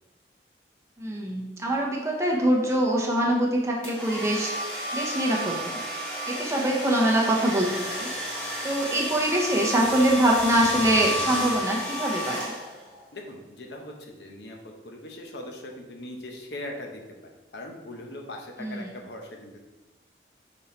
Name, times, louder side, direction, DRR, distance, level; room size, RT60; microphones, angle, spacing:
voice 1, 1.0-4.5 4.9-5.8 6.3-8.1 8.6-12.5 18.6-18.9, right 1 dB, 15° right, -2 dB, 1.0 m, -24 dB
sound 1, 3.8-13.0, equal, 5° left, 1.5 m, -32 dB
voice 2, 13.1-17.0 17.5-19.6, left 1 dB, 75° left, 2 dB, 0.9 m, -40 dB
5.5 x 4.3 x 4.3 m, 1.1 s
head